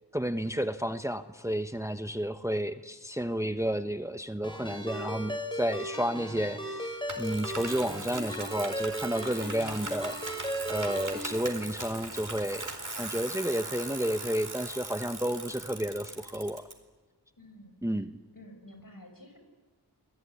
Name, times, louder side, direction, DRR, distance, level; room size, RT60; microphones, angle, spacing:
voice 1, 0.1-12.7 13.0-16.6 17.8-18.1, equal, 5° right, 9 dB, 1.1 m, -31 dB
Ringtone, 4.4-11.3, right 1 dB, 10° left, 6.1 m, -37 dB
Bicycle, 7.1-16.7, right 2 dB, 50° right, 4.3 m, -40 dB
voice 2, 15.5-15.9 17.4-17.8 18.3-19.4, left 1 dB, 55° left, 6 dB, 6.4 m, -51 dB
29.0 x 20.5 x 9.9 m, 1.3 s
wide cardioid pair, 40°, 39 cm